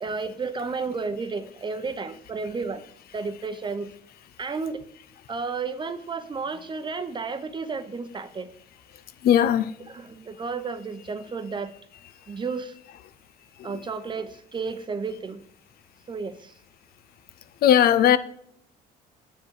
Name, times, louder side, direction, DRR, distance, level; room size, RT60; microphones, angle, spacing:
voice 1, 0.0-2.8 3.1-3.9 4.4-4.8 5.3-8.5 9.9-11.7 12.3-12.7 13.6-15.4 16.1-16.5, right 4 dB, 30° right, 0.9 m, -32 dB
voice 2, 8.9-9.8 12.3-12.4 13.6-13.9 17.6-18.2, left 10 dB, 65° left, 0.6 m, -20 dB
8.0 x 7.2 x 4.7 m
cardioid pair, 110°, 17 cm